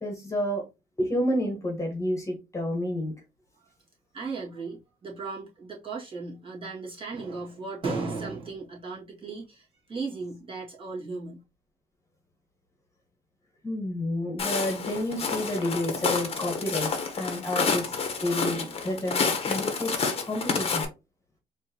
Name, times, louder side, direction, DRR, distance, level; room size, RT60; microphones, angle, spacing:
voice 1, 0.0-0.6 1.0-3.1 13.6-16.9 17.2-20.8, left 1 dB, 15° left, 1.4 m, -30 dB
voice 2, 4.1-11.4, right 4 dB, 30° right, 2.1 m, -36 dB
Walk footsteps, 14.4-20.8, left 5 dB, 35° left, 1.1 m, -29 dB
4.4 x 2.9 x 2.9 m
cardioid pair, 110°, 17 cm